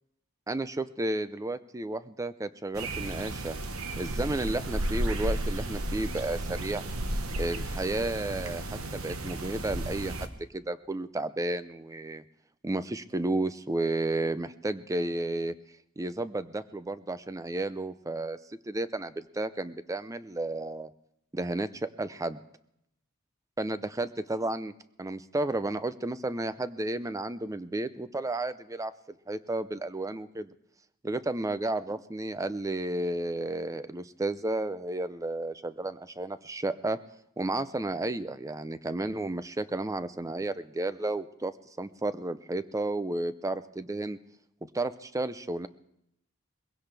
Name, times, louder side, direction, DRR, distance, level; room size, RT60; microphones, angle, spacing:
voice 1, 0.5-3.6 4.0-6.8 7.4-8.6 8.9-12.2 12.6-15.5 16.0-18.4 18.7-20.9 21.3-22.4 23.6-24.7 25.0-30.5 31.0-37.0 37.4-41.5 41.8-44.2 44.7-45.7, right 2 dB, 15° right, 13 dB, 0.5 m, -32 dB
sound 1, 2.7-10.3, right 1 dB, 75° right, 1.2 m, -33 dB
21.5 x 16.5 x 3.4 m, 0.78 s
head